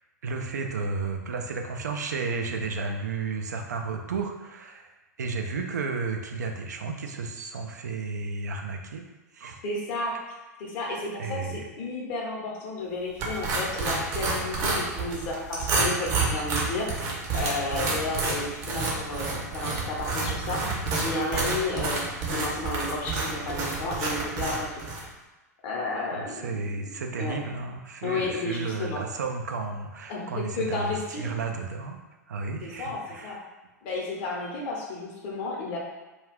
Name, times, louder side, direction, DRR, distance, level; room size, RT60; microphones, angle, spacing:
voice 1, 0.2-9.6 11.2-11.7 26.1-33.3, right 4 dB, 75° right, 3 dB, 0.4 m, -33 dB
voice 2, 9.6-10.1 10.6-22.0 22.3-24.8 25.6-26.5 27.2-27.4 28.0-29.0 30.1-31.3 32.6-33.4 33.8-35.8, left 2 dB, 45° left, -3 dB, 0.8 m, -32 dB
sound 1, 13.2-25.1, right 3 dB, 40° right, 0.7 m, -29 dB
2.3 x 2.3 x 3.4 m, 1.1 s
figure-of-eight pair, 95°, 9 cm